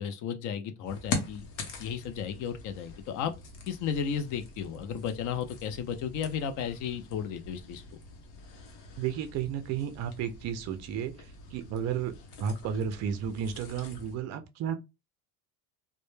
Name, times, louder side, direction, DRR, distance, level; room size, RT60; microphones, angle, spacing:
voice 1, 0.0-1.5 1.8-3.3 3.7-7.8, left 7 dB, 45° left, 0.5 m, -34 dB
sound 1, 0.8-14.2, left 4 dB, 80° left, 0.8 m, -43 dB
voice 2, 9.0-12.1 12.4-14.8, right 8 dB, 40° right, 0.4 m, -33 dB
2.1 x 2.0 x 3.0 m
cardioid pair, 135°, 44 cm